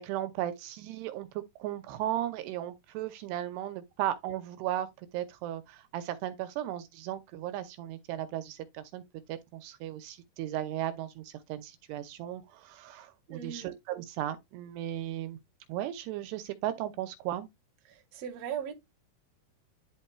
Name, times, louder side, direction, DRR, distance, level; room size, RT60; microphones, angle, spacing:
voice 1, 0.0-9.0 9.3-15.4 15.7-17.5, right 12 dB, 85° right, 2.8 m, -36 dB
voice 2, 13.3-13.7 17.9-18.7, right 8 dB, 50° right, 2.1 m, -38 dB
11.0 x 4.3 x 2.3 m
omnidirectional pair, 4.8 m